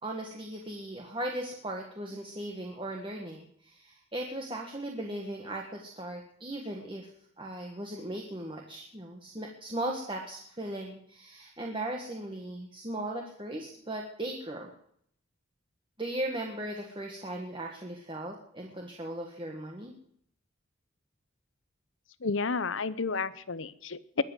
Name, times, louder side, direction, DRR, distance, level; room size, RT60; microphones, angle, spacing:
voice 1, 0.0-7.1 7.4-14.7 16.0-19.9, right 1 dB, 25° right, 1 dB, 1.5 m, -37 dB
voice 2, 22.2-24.2, left 4 dB, 70° left, 16 dB, 0.8 m, -31 dB
21.0 x 7.8 x 7.9 m, 0.67 s
head